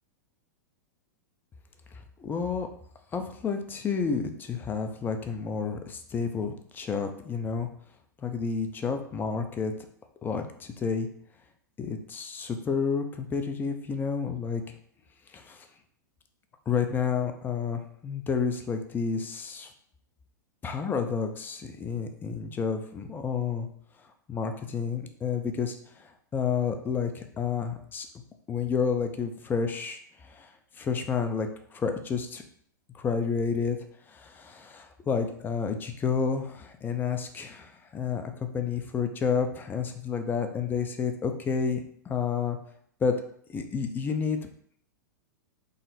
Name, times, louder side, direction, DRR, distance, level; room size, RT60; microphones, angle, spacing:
voice 1, 2.2-2.7 3.1-7.7 8.2-9.7 10.2-11.1 11.8-14.6 15.3-15.6 16.7-19.7 20.6-23.7 24.3-25.8 26.3-28.1 28.5-30.0 30.3-30.5 30.8-32.4 33.0-33.8 34.1-42.6 43.0-43.1 43.5-44.4, left 6 dB, 20° left, 6 dB, 0.5 m, -30 dB
3.9 x 2.0 x 4.1 m, 0.64 s
hypercardioid pair, 105°, 10 cm